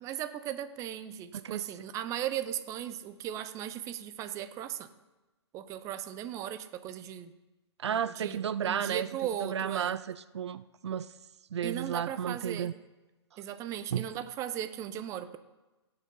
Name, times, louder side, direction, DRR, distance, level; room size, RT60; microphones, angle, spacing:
voice 1, 0.0-4.9 5.5-7.3 7.9-9.9 11.6-12.7 13.4-15.4, right 11 dB, 20° right, 0.7 m, -37 dB
voice 2, 1.3-1.6 7.8-9.1 9.4-11.1 11.5-12.7 13.9-14.1, right 8 dB, 70° right, 0.5 m, -33 dB
16.5 x 6.8 x 5.5 m
hypercardioid pair, 140°, 15 cm